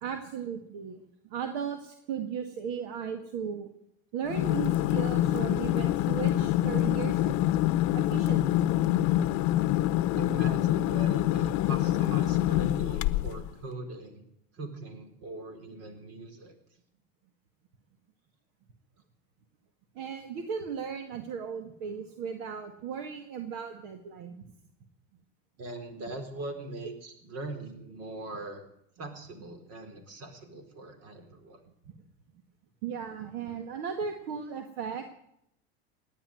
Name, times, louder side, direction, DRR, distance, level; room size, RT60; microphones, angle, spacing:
voice 1, 0.0-1.0 1.3-3.7 4.1-7.3 7.9-8.6 9.1-9.2 20.0-24.4 32.8-35.1, right 7 dB, 70° right, 6 dB, 1.9 m, -36 dB
sound 1, 4.3-13.5, left 14 dB, 60° left, 0.8 m, -26 dB
voice 2, 10.1-14.2 14.5-16.5 25.6-28.6 29.0-31.6, right 2 dB, 50° right, 7 dB, 3.9 m, -41 dB
18.0 x 10.5 x 7.8 m, 0.75 s
supercardioid pair, 130°, 31 cm